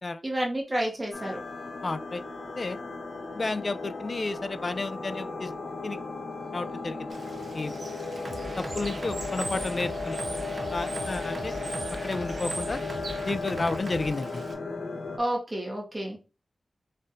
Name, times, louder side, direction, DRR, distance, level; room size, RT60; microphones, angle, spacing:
voice 1, 0.2-1.4 15.2-16.2, right 1 dB, 25° right, 1.6 m, -30 dB
sound 1, 1.1-15.2, left 3 dB, 75° left, 0.8 m, -36 dB
voice 2, 1.8-2.2 2.6-2.8 3.3-5.5 5.8-6.0 6.5-7.1 7.5-7.8 8.6-10.2 10.7-11.6 12.0-12.8 13.2-14.4, left 3 dB, 45° left, 0.3 m, -32 dB
Bird / Water, 7.1-14.5, right 3 dB, 65° right, 0.8 m, -42 dB
sound 2, 8.2-14.1, right 2 dB, 45° right, 0.5 m, -40 dB
4.2 x 3.7 x 2.5 m
wide cardioid pair, 85°, 0 cm